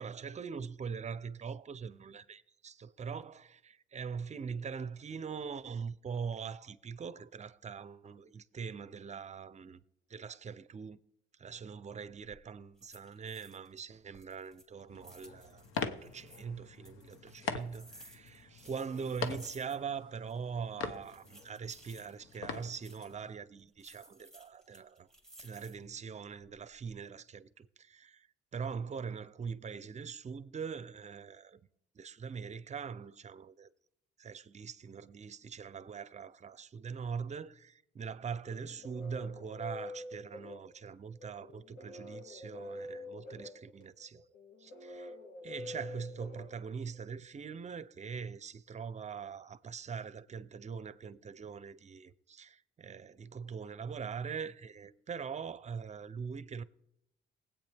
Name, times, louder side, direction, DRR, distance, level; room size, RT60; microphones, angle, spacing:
voice 1, 0.0-9.8 10.1-11.0 11.3-25.1 25.4-28.3 28.5-31.6 31.9-33.7 34.2-44.2 44.6-45.1 45.4-56.6, right 6 dB, 35° right, 0.6 m, -42 dB
sound 1, 12.1-12.4 12.8-13.8 14.1-16.4 16.8-20.0 20.3-20.4 20.9-23.2 23.8-25.9 26.4-26.9, right 1 dB, 5° left, 2.1 m, -58 dB
sound 2, 14.9-23.3, left 6 dB, 90° left, 1.0 m, -43 dB
sound 3, 38.5-47.2, left 2 dB, 60° left, 2.9 m, -47 dB
19.5 x 8.5 x 3.5 m
cardioid pair, 90°, 20 cm